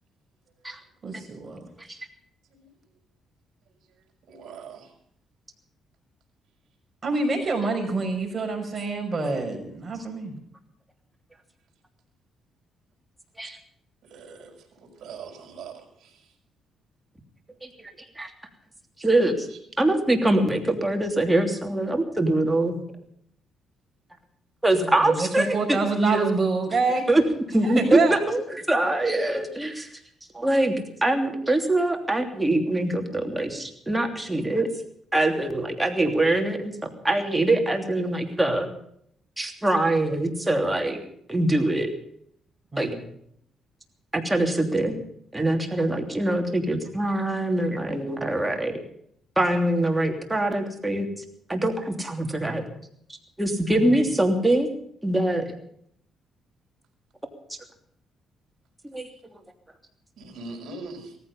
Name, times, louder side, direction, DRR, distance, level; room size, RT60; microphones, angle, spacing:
voice 1, 1.0-1.7 7.0-10.4 24.8-27.1 27.6-28.2 42.7-43.0 53.7-54.0, right 3 dB, 35° right, 1 dB, 6.0 m, -26 dB
voice 2, 2.4-3.0 3.7-4.9 13.4-13.5 14.0-16.4 19.5-19.6 60.2-61.2, right 4 dB, 65° right, 3 dB, 5.4 m, -43 dB
voice 3, 19.0-19.5 19.8-22.8 24.6-26.4 27.1-27.2 27.5-30.0 30.3-30.7 31.0-34.7 35.1-38.7 39.4-41.0 41.3-41.9 42.8-42.9 44.1-45.0 45.3-48.8 49.4-51.1 51.5-52.6 53.4-54.7 55.0-55.5 57.5-57.6 58.8-59.1, right 1 dB, 10° right, 4 dB, 3.1 m, -23 dB
17.5 x 15.0 x 5.5 m, 0.67 s
cardioid pair, 90°, 0 cm